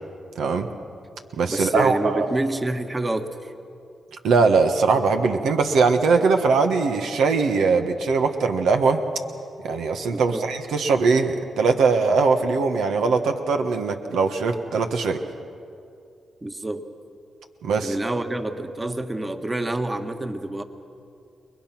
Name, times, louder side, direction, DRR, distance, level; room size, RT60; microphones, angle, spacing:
voice 1, 0.3-0.7 1.4-2.3 4.2-9.0 9.6-15.2 17.6-17.9, right 4 dB, 85° right, 5 dB, 1.4 m, -21 dB
voice 2, 1.5-3.5 10.1-10.5 16.4-16.8 17.8-20.6, right 2 dB, 25° right, 6 dB, 1.7 m, -27 dB
29.5 x 21.5 x 6.1 m, 2.5 s
cardioid pair, 65°, 0 cm